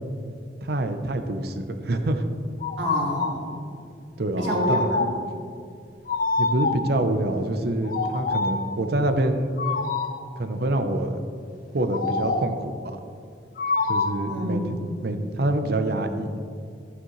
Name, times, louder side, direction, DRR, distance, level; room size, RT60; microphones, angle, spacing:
voice 1, 0.6-2.3 4.2-4.9 6.4-9.5 10.4-11.2 11.7-12.7 13.9-14.6 15.0-16.3, right 1 dB, 55° right, 7 dB, 0.7 m, -26 dB
sound 1, 2.6-3.4 4.4-5.3 6.1-7.0 7.8-8.7 9.6-10.3 11.9-12.6 13.6-14.4, left 3 dB, 50° left, 0.6 m, -26 dB
voice 2, 2.8-3.6 4.4-5.1 14.3-14.9, right 1 dB, 85° right, -2 dB, 2.0 m, -28 dB
14.5 x 6.4 x 3.1 m, 2.3 s
head